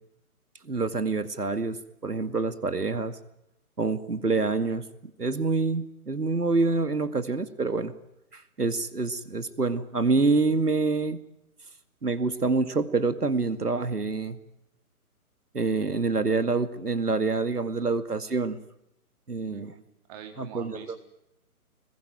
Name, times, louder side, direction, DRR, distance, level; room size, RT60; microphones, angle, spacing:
voice 1, 0.6-3.2 3.8-4.9 5.2-7.9 8.3-11.2 12.0-14.4 15.5-18.6 19.3-19.7 20.4-21.0, right 3 dB, 85° right, 11 dB, 2.3 m, -26 dB
voice 2, 19.5-21.0, right 8 dB, 25° right, 4 dB, 4.1 m, -45 dB
26.0 x 21.5 x 9.2 m, 0.84 s
figure-of-eight pair, 140°, 45 cm